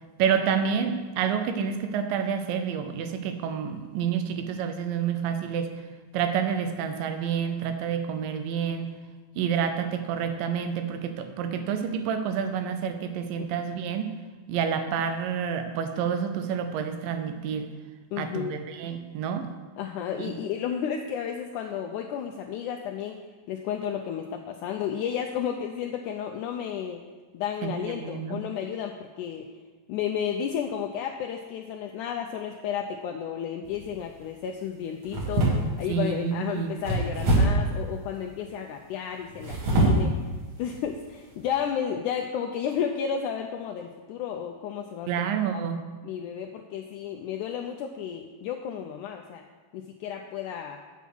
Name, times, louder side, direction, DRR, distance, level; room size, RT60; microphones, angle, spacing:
voice 1, 0.2-5.7 6.1-8.9 9.4-14.2 14.5-17.7 18.2-19.5 20.2-20.3 27.6-28.4 35.9-36.8 45.1-45.8, right 7 dB, 80° right, 8 dB, 2.5 m, -28 dB
voice 2, 18.1-18.6 19.8-23.2 23.5-27.0 27.3-29.5 29.9-40.1 40.6-45.3 45.5-45.6 46.0-49.4 49.7-50.8, left 8 dB, 80° left, 3 dB, 1.8 m, -32 dB
sound 1, 33.6-34.0 35.0-36.0 36.8-37.7 39.3-40.1 40.7-40.8 41.3-41.5, right 1 dB, 50° right, 2.8 m, -24 dB
8.2 x 7.2 x 6.1 m, 1.3 s
omnidirectional pair, 3.9 m